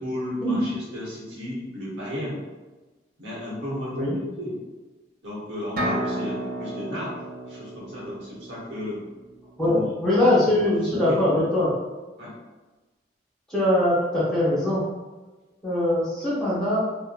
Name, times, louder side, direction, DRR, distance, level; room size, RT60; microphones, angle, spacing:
voice 1, 0.0-2.4 3.2-4.0 4.4-4.5 5.2-7.1 7.4-9.0 9.6-9.9 10.2-11.2 12.2-12.3, left 1 dB, 80° right, -6 dB, 1.0 m, -34 dB
sound 1, 5.8-9.5, right 1 dB, 50° right, 0.4 m, -32 dB
voice 2, 9.6-11.7 13.5-14.8 15.6-16.8, left 1 dB, 5° left, -9 dB, 0.7 m, -22 dB
2.6 x 2.1 x 2.4 m, 1.2 s
head